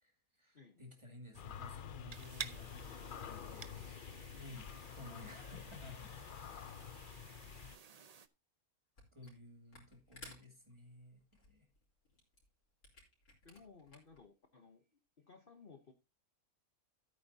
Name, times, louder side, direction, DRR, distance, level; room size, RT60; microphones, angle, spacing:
voice 1, 0.0-4.7 5.0-6.2 9.1-11.7, left 2 dB, 20° right, 3 dB, 2.3 m, -55 dB
sound 1, 1.3-7.8, left 8 dB, 55° left, 0.5 m, -49 dB
sound 2, 2.1-8.3, right 6 dB, 55° right, 0.4 m, -52 dB
Camera, 9.0-9.4 9.7-14.2, left 2 dB, 75° left, 4.2 m, -58 dB
voice 2, 13.4-14.9 15.2-15.9, left 5 dB, 40° left, 5 dB, 1.1 m, -59 dB
14.5 x 8.6 x 2.7 m, 0.24 s
omnidirectional pair, 1.5 m